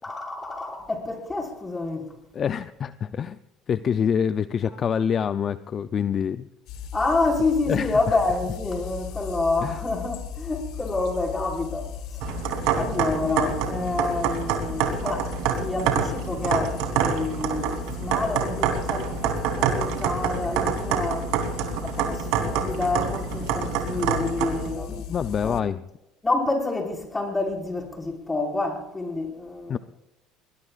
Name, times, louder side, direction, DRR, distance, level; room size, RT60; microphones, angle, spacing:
voice 1, 0.0-2.0 6.9-11.9 12.8-15.3 15.6-21.2 21.8-25.1 25.4-25.6 26.2-29.8, left 3 dB, 20° left, 5.2 m, -28 dB
voice 2, 2.3-3.4 3.7-6.5 7.7-8.1 9.6-9.8 25.0-25.8 29.7-29.8, left 7 dB, 40° left, 0.6 m, -26 dB
sound 1, 6.7-25.6, left 7 dB, 70° left, 1.3 m, -36 dB
sound 2, 12.2-24.7, right 7 dB, 75° right, 3.2 m, -27 dB
21.5 x 20.5 x 2.5 m
supercardioid pair, 90°, 0 cm